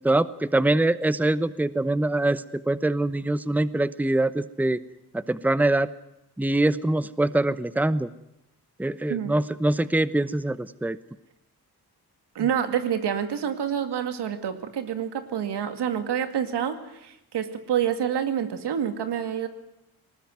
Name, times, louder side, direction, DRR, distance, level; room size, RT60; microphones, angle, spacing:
voice 1, 0.0-4.8 5.1-5.9 6.4-8.1 8.8-11.0, right 2 dB, 5° right, 16 dB, 0.9 m, -24 dB
voice 2, 12.3-19.5, right 9 dB, 85° right, 8 dB, 2.3 m, -27 dB
20.0 x 19.0 x 9.4 m, 0.84 s
cardioid pair, 65°, 40 cm